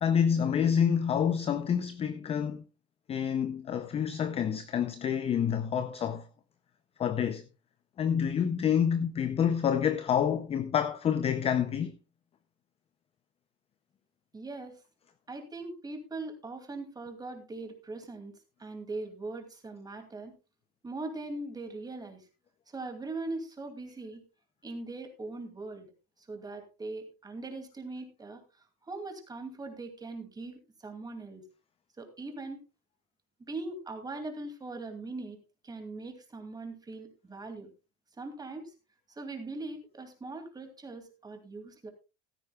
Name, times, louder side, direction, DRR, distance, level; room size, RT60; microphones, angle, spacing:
voice 1, 0.0-2.6 3.1-6.3 7.0-7.4 8.0-12.0, left 8 dB, 20° left, 0.5 m, -28 dB
voice 2, 14.3-14.8 15.3-20.3 20.8-22.3 22.7-24.2 24.6-25.9 26.3-28.4 28.8-31.4 32.0-32.6 33.5-35.4 35.6-37.7 38.2-38.7 39.1-41.9, right 2 dB, 10° right, 2.5 m, -40 dB
15.0 x 13.0 x 2.3 m
supercardioid pair, 145°, 33 cm